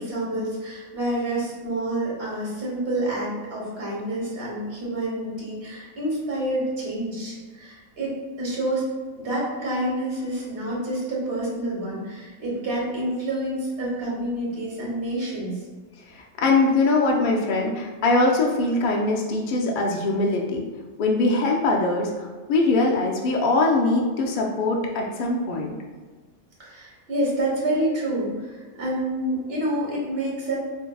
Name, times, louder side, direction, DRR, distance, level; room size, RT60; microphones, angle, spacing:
voice 1, 0.0-8.9 9.1-15.6 26.6-30.6, right 1 dB, 45° right, -5 dB, 1.2 m, -28 dB
voice 2, 16.1-20.6 21.0-25.7, left 2 dB, 80° left, -1 dB, 0.4 m, -22 dB
4.6 x 2.7 x 2.2 m, 1.4 s
omnidirectional pair, 1.5 m